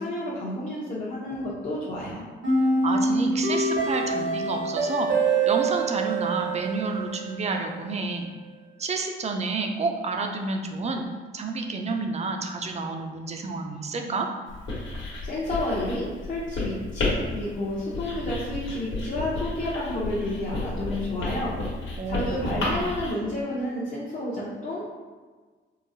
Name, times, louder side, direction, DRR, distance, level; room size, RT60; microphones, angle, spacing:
voice 1, 0.0-2.3 15.2-21.5 22.1-25.0, left 1 dB, 40° left, -6 dB, 0.7 m, -30 dB
sound 1, 2.4-7.5, right 3 dB, 70° right, 0.9 m, -25 dB
voice 2, 2.8-5.1 5.5-8.3 8.8-11.0 11.3-14.3 22.0-22.2 22.4-22.8, right 3 dB, 35° right, 4 dB, 0.4 m, -29 dB
Writing, 14.5-23.1, left 2 dB, 70° left, 1.1 m, -32 dB
3.7 x 2.0 x 2.7 m, 1.4 s
cardioid pair, 90°, 20 cm